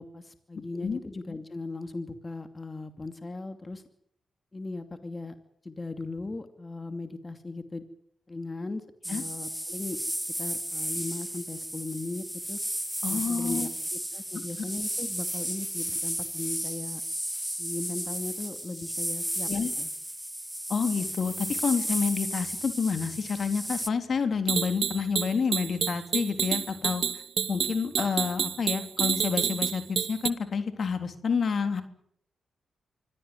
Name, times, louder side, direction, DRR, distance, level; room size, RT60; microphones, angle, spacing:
voice 1, 0.0-3.8 4.5-5.3 5.6-7.8 8.3-10.0 10.4-12.6 13.1-17.0 17.6-19.5 19.8-19.9, left 3 dB, 30° left, 8 dB, 2.6 m, -38 dB
sound 1, 9.0-23.9, equal, 5° right, 1.2 m, -34 dB
voice 2, 13.0-13.7 19.5-19.7 20.7-27.2 27.5-31.8, left 5 dB, 60° left, 8 dB, 3.3 m, -29 dB
sound 2, 24.5-30.3, right 8 dB, 75° right, 1.3 m, -29 dB
25.0 x 16.5 x 9.7 m, 0.68 s
cardioid pair, 60°, 0 cm